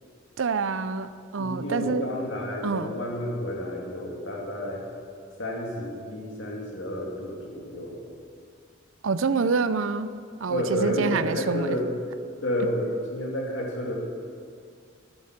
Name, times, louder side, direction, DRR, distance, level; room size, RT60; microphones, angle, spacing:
voice 1, 0.4-2.0 2.6-2.9 9.0-11.8, right 4 dB, 75° right, 13 dB, 0.6 m, -27 dB
voice 2, 1.4-4.8 5.4-8.0 10.5-11.9 12.4-14.0, equal, 65° left, -2 dB, 2.8 m, -30 dB
13.0 x 12.0 x 6.0 m, 2.2 s
head